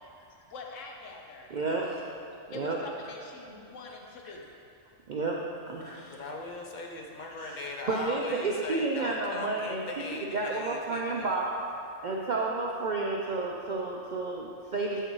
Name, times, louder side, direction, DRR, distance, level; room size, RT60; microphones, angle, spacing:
voice 1, 0.4-1.6 2.5-4.4, left 3 dB, 75° left, 1 dB, 1.1 m, -44 dB
voice 2, 1.5-2.1 2.5-2.8 4.2-4.3 5.1-5.4 5.7-6.2 7.4-7.6 7.9-11.5 12.0-15.0, right 3 dB, 65° right, -1 dB, 0.4 m, -31 dB
voice 3, 6.0-11.4, left 2 dB, 50° left, 0 dB, 0.6 m, -39 dB
7.5 x 6.6 x 3.1 m, 2.6 s
omnidirectional pair, 1.3 m